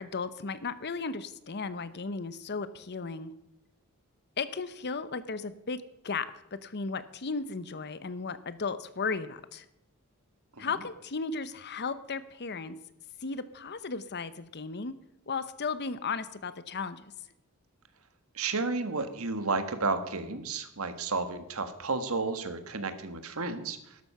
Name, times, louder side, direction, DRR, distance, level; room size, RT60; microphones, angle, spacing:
voice 1, 0.0-3.3 4.4-6.3 6.5-9.7 10.6-12.8 13.2-15.0 15.3-17.0, left 4 dB, 50° left, 14 dB, 0.8 m, -35 dB
voice 2, 18.3-24.0, right 3 dB, 70° right, 9 dB, 1.5 m, -32 dB
12.5 x 12.0 x 5.6 m, 0.87 s
head